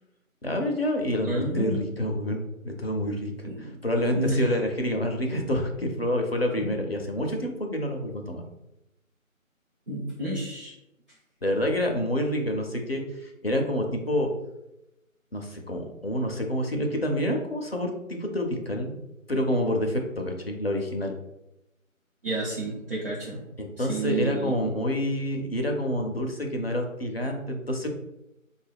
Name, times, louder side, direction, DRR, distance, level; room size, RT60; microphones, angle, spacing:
voice 1, 0.4-8.4 11.4-14.3 15.3-19.0 19.3-21.2 23.6-27.9, equal, 50° left, 2 dB, 0.5 m, -28 dB
voice 2, 1.2-1.8 3.5-3.7 4.1-4.6 6.6-6.7 9.9-10.7 22.2-23.4 23.8-24.7, right 2 dB, 45° right, -8 dB, 0.7 m, -30 dB
3.5 x 2.3 x 3.3 m, 0.90 s
figure-of-eight pair, 170°, 41 cm